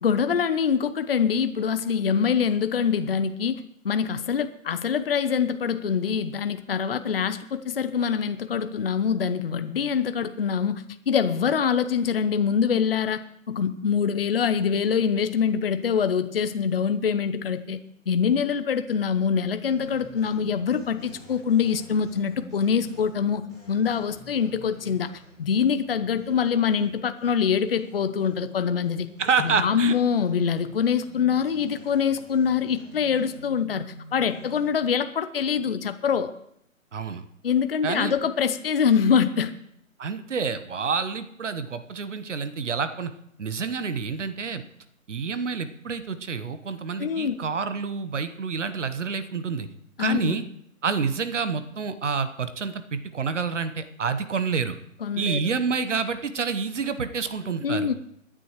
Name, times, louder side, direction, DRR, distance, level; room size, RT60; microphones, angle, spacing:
voice 1, 0.0-13.2 13.5-25.1 25.4-29.1 29.4-33.9 34.1-36.3 37.4-39.5 47.0-47.3 50.0-50.4 55.0-55.4 57.6-57.9, left 7 dB, 45° left, 11 dB, 0.7 m, -24 dB
sound 1, 19.6-34.7, equal, 5° right, 0.7 m, -48 dB
voice 2, 29.2-29.9 36.9-37.2 37.8-38.1 40.0-43.1 43.4-44.6 45.1-49.7 50.0-50.4 50.8-54.8 55.2-57.9, right 5 dB, 60° right, 11 dB, 1.1 m, -28 dB
23.0 x 10.0 x 3.1 m, 0.73 s
hypercardioid pair, 160°, 41 cm